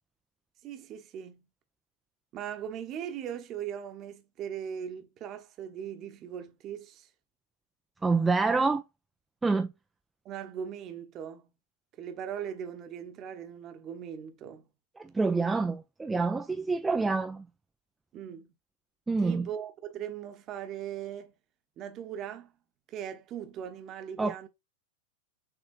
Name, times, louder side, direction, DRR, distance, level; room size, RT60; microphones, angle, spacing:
voice 1, 0.6-1.5 2.3-7.1 10.2-11.5 12.0-14.7 18.1-18.5 19.2-21.3 21.8-22.5 22.9-24.5, right 9 dB, 35° right, 0.9 m, -39 dB
voice 2, 8.0-8.8 9.4-9.7 15.0-17.5 19.1-19.5 24.2-24.5, right 4 dB, 10° right, 0.4 m, -27 dB
6.5 x 3.3 x 2.4 m
figure-of-eight pair, 90°, 0 cm